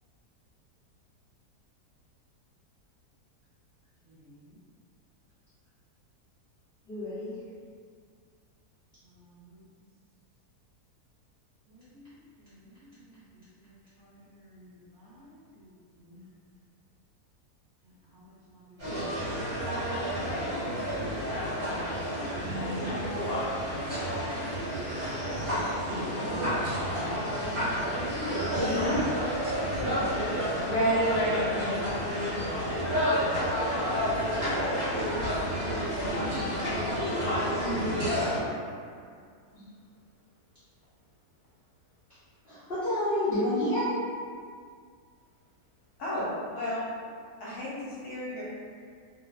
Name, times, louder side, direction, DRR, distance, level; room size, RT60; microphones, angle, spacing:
voice 1, 4.0-4.6 9.0-9.6 11.7-16.3 17.8-19.5 33.1-34.7 38.4-39.3, left 1 dB, 70° right, -8 dB, 1.1 m, -53 dB
voice 2, 6.9-7.3 28.5-29.2 42.4-44.0, left 1 dB, 50° left, -15 dB, 0.6 m, -29 dB
sound 1, 18.8-38.4, equal, 40° right, 1.2 m, -30 dB
voice 3, 30.6-32.6 35.4-35.5 46.0-46.9 47.4-48.4, equal, 70° left, -8 dB, 1.2 m, -31 dB
2.8 x 2.0 x 2.3 m, 2.1 s
omnidirectional pair, 1.7 m